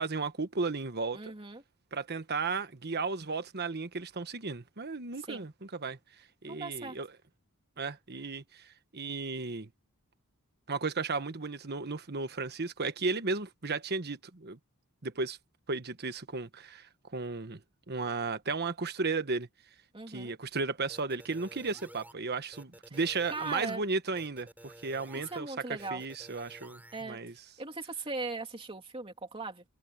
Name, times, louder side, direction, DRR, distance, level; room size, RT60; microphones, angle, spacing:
voice 1, 0.0-1.3 1.9-6.0 6.4-7.1 7.8-9.7 10.7-14.6 15.0-15.4 15.7-17.6 17.9-19.5 20.1-25.5 25.9-27.3, right 4 dB, 50° right, 1.3 m, -34 dB
voice 2, 1.1-1.6 5.2-5.5 6.4-7.0 19.9-20.3 22.9-23.0 23.3-23.8 25.1-26.0 26.9-27.2 27.6-29.6, right 3 dB, 25° right, 3.0 m, -39 dB
sound 1, 20.9-22.1 22.5-23.8 24.2-25.4 25.8-27.0, right 1 dB, 10° right, 5.9 m, -52 dB
head